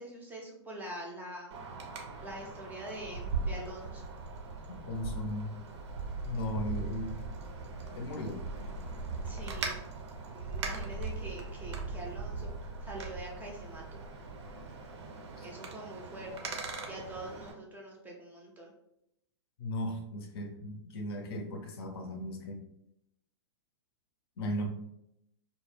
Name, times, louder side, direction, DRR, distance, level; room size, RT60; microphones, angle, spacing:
voice 1, 0.0-1.6 2.2-4.1 9.2-9.8 10.3-14.0 15.4-18.7, right 1 dB, 10° right, -1 dB, 0.5 m, -45 dB
Wind, 1.5-17.5, right 3 dB, 70° right, 0.6 m, -40 dB
voice 2, 4.7-5.6 6.2-7.3 7.7-8.4 15.4-15.5 19.6-22.6 24.4-24.7, left 1 dB, 55° left, 3 dB, 0.5 m, -37 dB
2.1 x 2.0 x 3.2 m, 0.79 s
hypercardioid pair, 120°, 15 cm